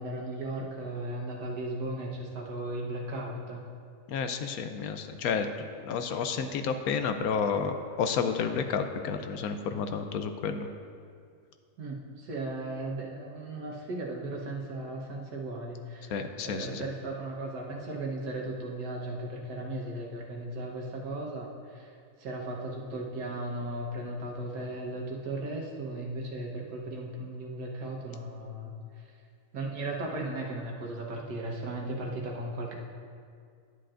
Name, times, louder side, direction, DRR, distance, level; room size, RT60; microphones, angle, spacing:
voice 1, 0.0-3.6 11.8-16.2 16.4-29.1 29.5-32.8, right 2 dB, 85° right, -1 dB, 1.7 m, -36 dB
voice 2, 4.1-5.5 5.8-10.7 16.1-16.8, left 6 dB, 75° left, 7 dB, 1.0 m, -31 dB
11.0 x 10.0 x 2.5 m, 2.2 s
omnidirectional pair, 1.6 m